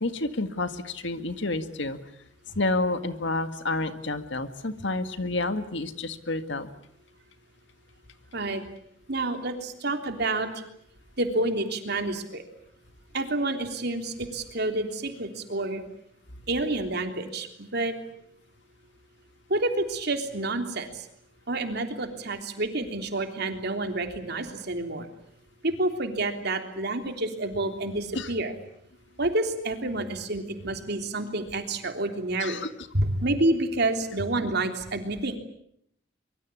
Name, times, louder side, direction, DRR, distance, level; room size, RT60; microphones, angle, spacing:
voice 1, 0.0-2.0 2.6-6.7 28.1-28.3 32.4-32.7, left 2 dB, 70° left, 9 dB, 1.9 m, -29 dB
voice 2, 9.1-10.5 11.2-12.4 13.1-15.8 16.5-17.9 19.5-21.1 21.5-25.1 25.6-28.5 29.2-32.6 32.9-35.4, right 2 dB, 60° right, 5 dB, 3.4 m, -29 dB
24.5 x 23.5 x 8.4 m, 0.71 s
head